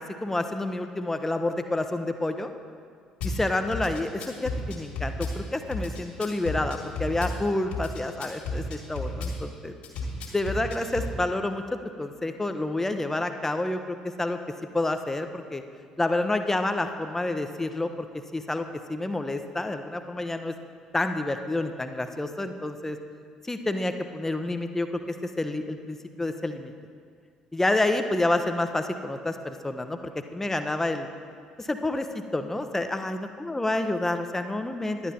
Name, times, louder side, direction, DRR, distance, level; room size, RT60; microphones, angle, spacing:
voice 1, 0.0-2.5 3.2-9.7 10.3-11.6 12.0-14.4 14.7-15.6 16.0-18.1 18.3-20.5 20.9-23.0 23.4-26.7 27.5-30.0 30.3-31.1 31.6-33.2 33.5-35.1, left 2 dB, 10° left, 7 dB, 0.7 m, -29 dB
Drum kit / Bass drum, 3.2-3.4 3.7-5.4 5.7-7.4 7.7-9.4 9.8-11.1, left 2 dB, 60° left, 2.0 m, -32 dB
11.0 x 9.7 x 4.2 m, 2.1 s
figure-of-eight pair, 50°, 3 cm